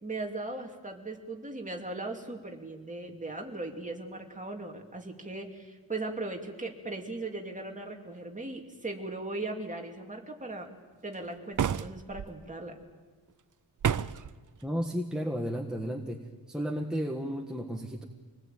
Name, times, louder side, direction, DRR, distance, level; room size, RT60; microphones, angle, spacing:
voice 1, 0.0-10.7 11.0-12.8, right 2 dB, 20° right, 2 dB, 2.7 m, -38 dB
sound 1, 11.5-12.3 13.8-14.3, right 8 dB, 55° right, 0.7 m, -29 dB
voice 2, 14.6-18.0, equal, ahead, 1 dB, 1.5 m, -33 dB
26.5 x 20.0 x 9.2 m, 1.5 s
wide cardioid pair, 160°, 38 cm